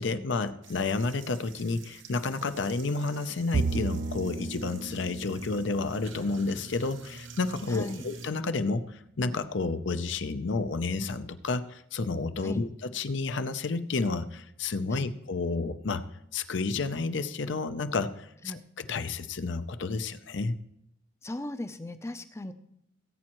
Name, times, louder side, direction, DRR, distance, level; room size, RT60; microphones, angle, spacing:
voice 1, 0.0-16.0 16.3-20.6, left 3 dB, 70° left, 11 dB, 0.6 m, -31 dB
sound 1, 0.6-8.3, right 5 dB, 75° right, 1.1 m, -49 dB
Bowed string instrument, 3.5-7.0, right 4 dB, 45° right, 0.4 m, -34 dB
voice 2, 7.7-8.1 12.4-12.6 14.9-15.1 18.4-18.6 21.2-22.5, left 1 dB, 15° left, 10 dB, 0.5 m, -38 dB
18.5 x 8.6 x 3.1 m, 0.78 s
head